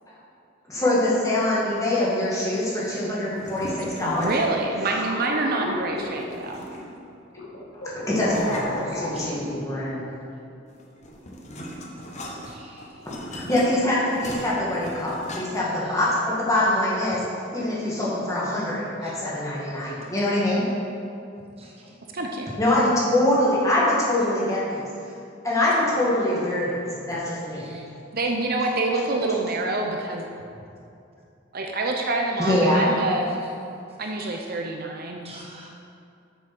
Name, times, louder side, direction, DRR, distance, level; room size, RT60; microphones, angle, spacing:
voice 1, 0.7-4.3 8.0-10.0 13.3-20.7 22.6-24.8 25.4-27.6 32.4-32.8, left 1 dB, 15° left, -7 dB, 2.2 m, -24 dB
sound 1, 3.3-4.7 6.1-7.1 8.1-9.5 10.7-15.8, equal, 35° left, 1.1 m, -39 dB
sound 2, 4.0-6.7 7.3-10.0, left 1 dB, 60° left, 1.7 m, -34 dB
voice 2, 4.0-6.6 22.1-22.5 28.1-30.3 31.5-33.3 34.0-35.3, right 2 dB, 50° right, 1 dB, 0.8 m, -26 dB
voice 3, 8.9-9.4 12.5-12.8 19.0-19.1 21.6-21.7 27.6-27.9 35.2-35.7, right 2 dB, 30° right, -2 dB, 1.1 m, -46 dB
8.0 x 7.3 x 6.1 m, 2.6 s
head